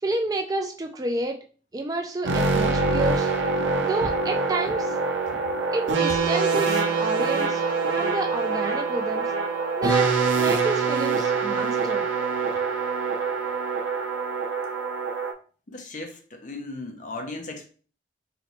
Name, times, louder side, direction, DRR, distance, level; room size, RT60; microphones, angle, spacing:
voice 1, 0.0-1.4 1.7-3.3 3.8-5.0 5.7-7.6 7.9-9.3 9.8-12.0, right 2 dB, 20° right, 0.3 m, -30 dB
sound 1, 2.2-15.3, right 4 dB, 90° right, 0.6 m, -24 dB
voice 2, 15.7-17.7, left 3 dB, 45° left, 0.7 m, -36 dB
4.0 x 3.0 x 3.0 m
head